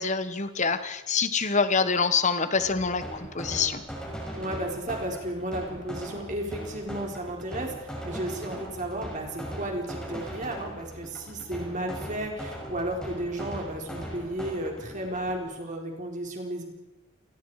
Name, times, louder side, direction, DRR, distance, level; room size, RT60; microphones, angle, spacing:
voice 1, 0.0-3.8, left 5 dB, 30° left, 11 dB, 1.3 m, -26 dB
sound 1, 2.6-15.4, right 1 dB, 5° left, 5.7 m, -39 dB
voice 2, 4.4-16.6, right 1 dB, 35° right, 1 dB, 4.3 m, -33 dB
28.0 x 20.5 x 4.9 m, 1.0 s
head